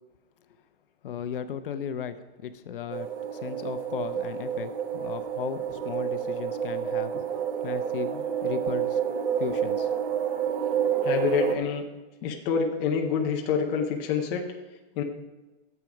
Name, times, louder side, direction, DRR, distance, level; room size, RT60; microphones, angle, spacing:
voice 1, 1.0-7.1 7.6-9.0 9.4-9.9, left 8 dB, 55° left, 10 dB, 0.8 m, -36 dB
sound 1, 2.9-11.6, right 8 dB, 55° right, 1.2 m, -29 dB
voice 2, 11.0-11.9 12.2-14.5 15.0-15.1, left 6 dB, 15° left, 1 dB, 0.6 m, -27 dB
11.0 x 7.3 x 5.0 m, 1.2 s
hypercardioid pair, 165°, 32 cm